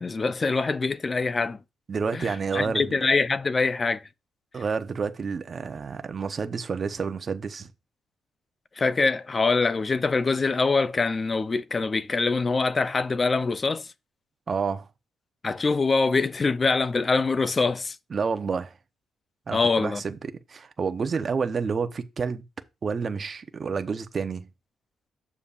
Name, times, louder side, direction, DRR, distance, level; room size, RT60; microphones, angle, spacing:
voice 1, 0.0-1.6 2.1-2.3 2.5-4.0 8.8-13.9 15.4-18.0 19.5-20.0, left 4 dB, 30° left, 0.5 m, -24 dB
voice 2, 1.9-2.9 4.5-7.7 14.5-14.9 18.1-18.8 19.5-22.4 22.8-24.5, right 5 dB, 40° right, 0.8 m, -29 dB
8.3 x 7.0 x 2.5 m
cardioid pair, 90°, 0 cm